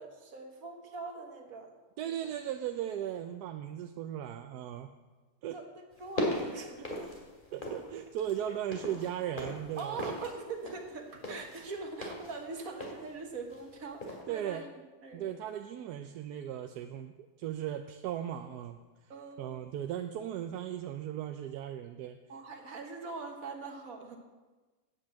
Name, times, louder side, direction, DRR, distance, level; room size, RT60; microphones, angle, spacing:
voice 1, 0.0-1.7 2.0-2.3 5.5-7.0 9.8-14.6 15.0-15.4 19.1-19.7 22.3-24.2, right 4 dB, 65° right, 4 dB, 1.8 m, -42 dB
voice 2, 2.0-4.9 5.4-5.6 6.8-6.9 7.5-10.1 14.3-14.6 15.1-19.1 19.4-22.2, right 10 dB, 90° right, 7 dB, 1.2 m, -37 dB
sound 1, 5.9-7.9 8.2-13.7 14.0-14.2, left 1 dB, 30° left, 2.3 m, -38 dB
9.2 x 8.8 x 7.4 m, 1.3 s
omnidirectional pair, 1.7 m